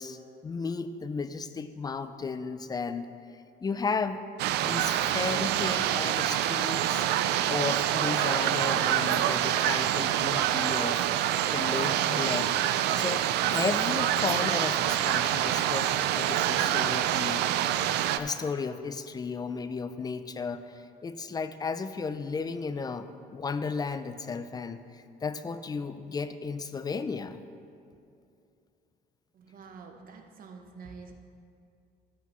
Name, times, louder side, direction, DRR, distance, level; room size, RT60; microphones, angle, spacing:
voice 1, 0.0-3.1 3.6-4.2 4.6-7.1 7.5-11.0 11.5-13.2 13.5-17.5 18.2-27.4, left 4 dB, 25° left, 11 dB, 0.4 m, -34 dB
sound 1, 4.4-18.2, right 11 dB, 80° right, 0.4 m, -26 dB
voice 2, 29.3-31.1, right 5 dB, 55° right, 4 dB, 1.0 m, -47 dB
13.0 x 8.1 x 3.1 m, 2.5 s
cardioid pair, 110°, 17 cm